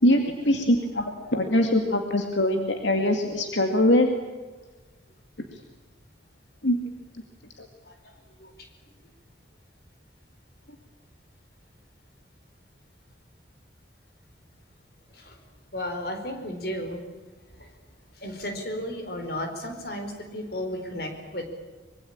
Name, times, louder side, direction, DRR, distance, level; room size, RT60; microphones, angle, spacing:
voice 1, 0.0-4.1 6.6-6.8 7.6-7.7, left 1 dB, 75° left, 4 dB, 2.3 m, -22 dB
voice 2, 15.7-17.0 17.6-17.7 18.2-21.5, left 1 dB, 55° left, 5 dB, 4.6 m, -33 dB
25.0 x 23.0 x 8.8 m, 1.3 s
head